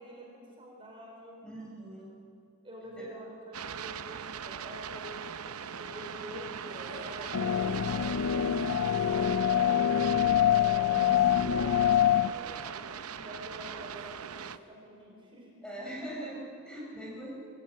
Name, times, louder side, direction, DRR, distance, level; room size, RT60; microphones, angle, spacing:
voice 1, 0.0-1.4 2.6-8.8 9.4-10.2 11.4-15.5, equal, 25° right, -2 dB, 4.5 m, -47 dB
voice 2, 1.4-2.1 2.9-3.1 7.3-7.9 8.3-8.7 9.7-10.5 10.8-11.4 15.6-17.4, right 1 dB, 5° left, -4 dB, 4.4 m, -43 dB
sound 1, 3.5-14.6, right 7 dB, 85° right, 0.7 m, -40 dB
sound 2, 6.6-11.0, equal, 30° left, 3.3 m, -50 dB
sound 3, 7.3-12.3, left 10 dB, 85° left, 0.4 m, -25 dB
22.0 x 15.0 x 8.8 m, 2.4 s
head